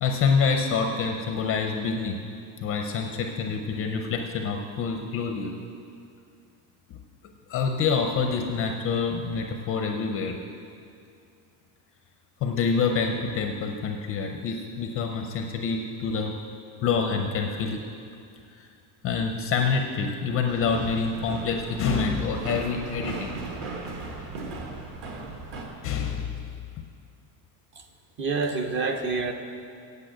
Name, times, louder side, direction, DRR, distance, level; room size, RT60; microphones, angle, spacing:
voice 1, 0.0-2.2 2.6-5.5 6.9-7.0 7.5-10.4 12.4-16.3 16.8-17.8 18.5-18.7 19.0-23.4 25.8-26.4, left 5 dB, 30° left, 4 dB, 0.5 m, -27 dB
sound 1, 20.5-25.7, right 3 dB, 45° right, 1.5 m, -37 dB
voice 2, 28.2-29.3, right 4 dB, 25° right, 6 dB, 0.5 m, -27 dB
8.8 x 8.1 x 7.8 m, 2.4 s
cardioid pair, 170°, 47 cm